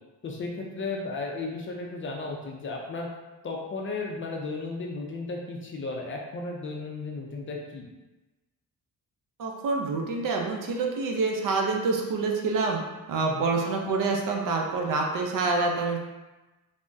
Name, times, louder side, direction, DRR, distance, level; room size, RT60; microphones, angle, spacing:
voice 1, 0.2-3.1 3.4-7.9 13.2-13.6, left 3 dB, 35° left, 0 dB, 0.4 m, -34 dB
voice 2, 9.4-12.8 13.1-16.0, right 3 dB, 60° right, 1 dB, 0.6 m, -27 dB
3.4 x 2.1 x 2.5 m, 1.1 s
cardioid pair, 120°, 36 cm